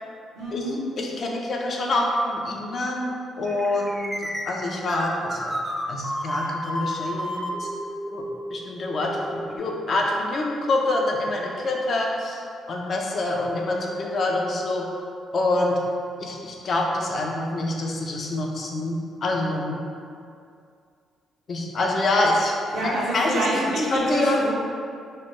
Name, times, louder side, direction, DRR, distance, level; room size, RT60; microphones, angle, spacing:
voice 1, 0.4-0.8 22.7-24.5, right 1 dB, 80° right, -7 dB, 0.8 m, -26 dB
voice 2, 1.0-4.2 4.5-5.5 5.9-7.7 8.1-12.4 12.7-14.8 15.3-15.8 16.2-19.8 21.5-23.5 23.9-24.4, left 2 dB, 50° left, 0 dB, 0.4 m, -26 dB
sound 1, 3.5-9.6, equal, 15° right, 0.4 m, -32 dB
3.1 x 2.0 x 3.0 m, 2.3 s
cardioid pair, 90°, 0 cm